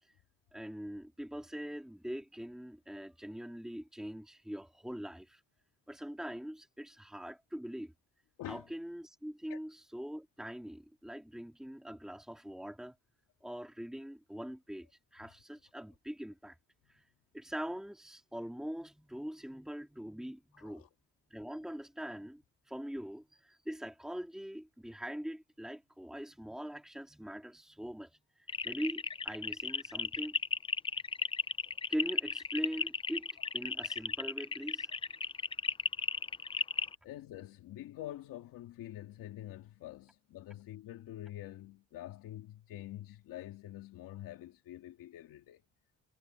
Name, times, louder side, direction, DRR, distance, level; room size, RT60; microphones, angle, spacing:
voice 1, 0.5-5.4 5.9-7.9 8.4-12.9 13.4-14.9 15.1-16.6 16.9-17.1 17.3-20.8 21.3-30.4 31.9-33.3 33.5-34.9, equal, ahead, 2.8 m, -42 dB
voice 2, 20.5-20.9 37.0-45.6, left 13 dB, 85° left, 2.1 m, -46 dB
sound 1, 28.5-37.0, left 5 dB, 15° left, 0.4 m, -35 dB
cardioid pair, 145°, 33 cm